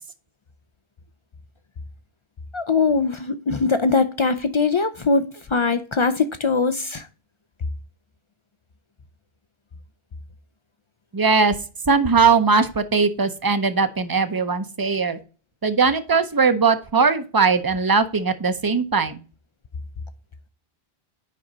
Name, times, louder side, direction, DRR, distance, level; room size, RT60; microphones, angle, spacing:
voice 1, 2.5-7.1, left 4 dB, 55° left, 0.3 m, -21 dB
voice 2, 11.1-11.6 11.9-15.2 15.6-19.2, right 5 dB, 30° right, 0.5 m, -19 dB
7.5 x 5.3 x 3.9 m
omnidirectional pair, 1.1 m